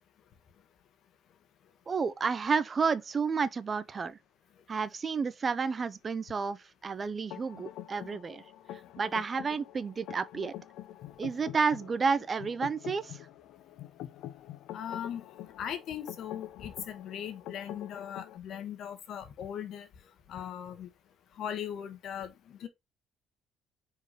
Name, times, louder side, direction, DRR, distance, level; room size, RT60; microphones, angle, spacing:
voice 1, 1.9-4.2 4.7-8.4 9.0-10.5 11.2-13.3, right 5 dB, 30° right, 0.7 m, -31 dB
sound 1, 7.3-18.4, left 12 dB, 75° left, 0.7 m, -46 dB
voice 2, 14.7-15.2 15.6-19.9 20.3-20.9 21.4-22.7, left 9 dB, 60° left, 1.5 m, -39 dB
4.9 x 4.5 x 5.1 m
cardioid pair, 105°, 0 cm